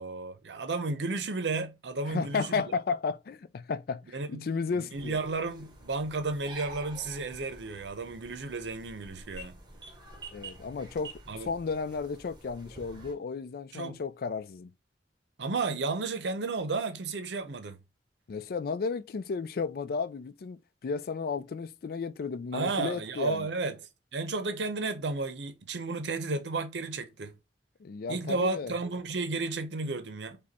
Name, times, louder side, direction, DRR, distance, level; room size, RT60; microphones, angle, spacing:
voice 1, 0.0-2.6 4.1-4.5 4.8-9.6 11.3-11.5 13.7-14.0 15.4-17.8 22.5-23.8 24.1-27.4 28.1-30.4, right 3 dB, 80° right, 0.7 m, -33 dB
voice 2, 2.1-5.2 10.3-14.7 18.3-23.5 27.8-28.7, left 5 dB, 55° left, 0.4 m, -33 dB
sound 1, 4.9-13.1, right 2 dB, 25° right, 1.1 m, -48 dB
5.1 x 2.3 x 4.1 m
head